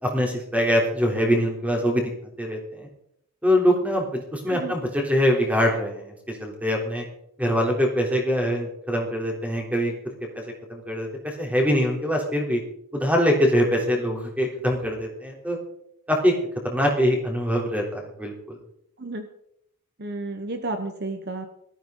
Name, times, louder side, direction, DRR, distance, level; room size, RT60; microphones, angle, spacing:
voice 1, 0.0-2.1 2.4-2.9 3.4-7.0 7.4-9.9 10.3-10.4 10.7-12.6 12.9-15.6 16.1-16.3 16.6-18.3, equal, 5° right, 0 dB, 3.4 m, -23 dB
voice 2, 19.0-19.3 20.0-21.5, right 2 dB, 45° right, 7 dB, 1.1 m, -32 dB
19.0 x 13.5 x 3.9 m, 0.74 s
head